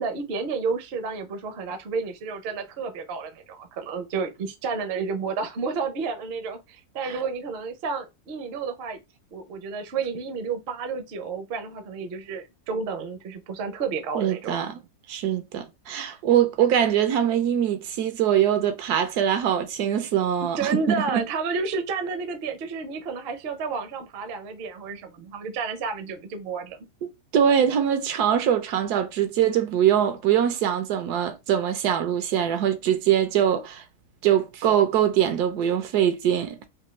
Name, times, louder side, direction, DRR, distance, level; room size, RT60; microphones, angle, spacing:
voice 1, 0.0-9.0 9.3-14.7 20.6-26.9, right 5 dB, 55° right, 0.7 m, -31 dB
voice 2, 14.1-14.8 15.1-21.2 27.3-33.8 34.2-36.7, right 9 dB, 80° right, 1.2 m, -23 dB
3.4 x 2.6 x 3.0 m
omnidirectional pair, 1.7 m